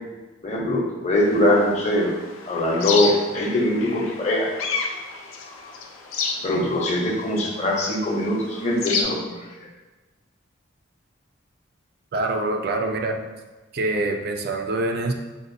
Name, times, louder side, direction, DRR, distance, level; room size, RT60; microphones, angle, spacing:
voice 1, 0.4-2.1 2.5-4.5 6.4-9.3, left 1 dB, 35° left, -2 dB, 0.6 m, -22 dB
sound 1, 1.2-9.0, left 5 dB, 85° left, 0.5 m, -31 dB
voice 2, 12.1-13.2 13.7-15.1, right 2 dB, 50° right, 4 dB, 0.3 m, -25 dB
5.1 x 2.2 x 2.6 m, 1.2 s
head